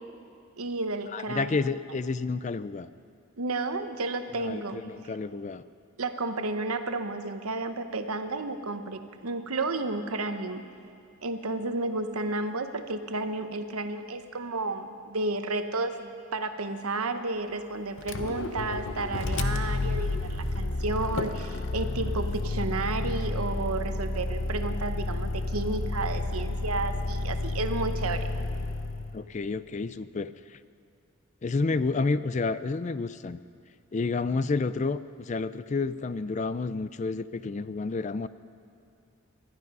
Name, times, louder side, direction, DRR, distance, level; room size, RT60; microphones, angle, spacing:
voice 1, 0.6-1.7 3.4-4.8 6.0-10.6 11.2-28.3, right 2 dB, 85° right, 8 dB, 1.0 m, -32 dB
voice 2, 1.1-2.9 4.4-5.6 29.1-30.3 31.4-33.4 33.9-38.3, left 3 dB, 35° left, 15 dB, 0.3 m, -30 dB
Motor vehicle (road), 18.0-29.2, left 2 dB, 60° left, 0.8 m, -31 dB
20.5 x 12.5 x 5.4 m, 2.4 s
head